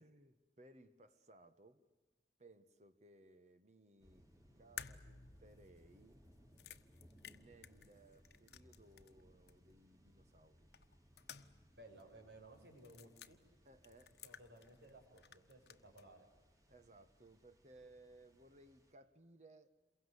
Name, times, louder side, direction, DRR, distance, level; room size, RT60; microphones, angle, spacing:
voice 1, 0.0-1.8 2.4-4.3 4.6-6.2 7.3-10.7 13.6-14.2 16.7-19.7, right 2 dB, 40° right, 1.5 m, -63 dB
sound 1, 4.0-18.9, equal, 20° right, 4.5 m, -68 dB
sound 2, 4.8-9.2 9.5-9.6 10.7-11.7 12.0-12.1 12.8-13.3 13.8-14.9 15.2-16.1, left 8 dB, 70° left, 1.2 m, -55 dB
voice 2, 11.7-13.4 14.2-16.3, right 1 dB, 80° right, 6.5 m, -59 dB
28.5 x 22.5 x 8.3 m
head